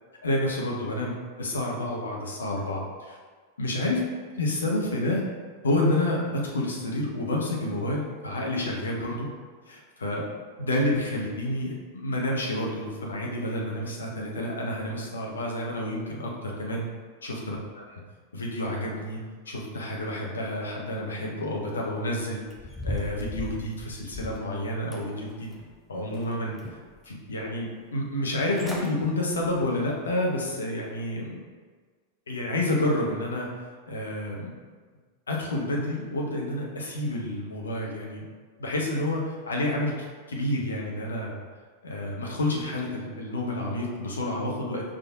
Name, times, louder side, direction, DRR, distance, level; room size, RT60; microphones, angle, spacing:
voice 1, 0.2-3.2 3.6-4.0 4.4-5.2 5.6-9.3 9.7-10.2 10.6-16.9 17.2-17.6 18.3-19.2 19.5-22.4 22.8-25.5 25.9-26.6 27.1-31.4 32.3-33.5 33.9-34.5 35.3-38.2 38.6-41.4 41.8-44.8, left 1 dB, 70° left, -1 dB, 0.8 m, -29 dB
sound 1, 22.5-24.5 24.9-25.7 26.1-27.0 27.4-27.5 28.2-28.3 28.5-28.9 29.3-29.6 30.1-30.2, left 2 dB, 5° left, 0.6 m, -37 dB
5.1 x 3.6 x 2.3 m, 1.5 s
figure-of-eight pair, 90°, 0 cm